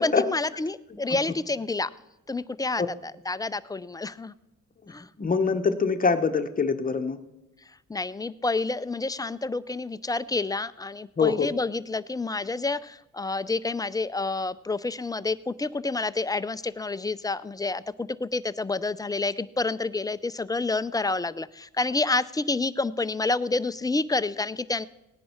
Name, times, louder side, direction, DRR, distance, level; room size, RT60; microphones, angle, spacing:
voice 1, 0.0-1.9 2.3-4.3 4.9-5.1 7.9-24.9, left 3 dB, 15° left, 15 dB, 0.4 m, -29 dB
voice 2, 5.2-7.2 11.2-11.5, left 5 dB, 30° left, 8 dB, 0.9 m, -24 dB
18.0 x 10.0 x 4.4 m, 0.96 s
cardioid pair, 90°, 30 cm